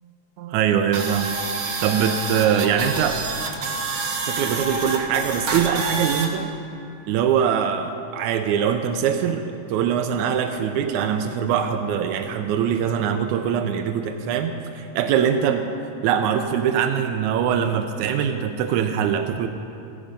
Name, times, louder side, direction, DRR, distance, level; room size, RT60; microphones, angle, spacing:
voice 1, 0.4-1.3 1.8-3.2 4.2-6.5 7.1-15.7 16.0-19.5, right 8 dB, 90° right, 6 dB, 2.1 m, -22 dB
sound 1, 0.9-6.3, right 3 dB, 65° right, 0.9 m, -28 dB
15.5 x 11.5 x 5.2 m, 2.7 s
omnidirectional pair, 3.3 m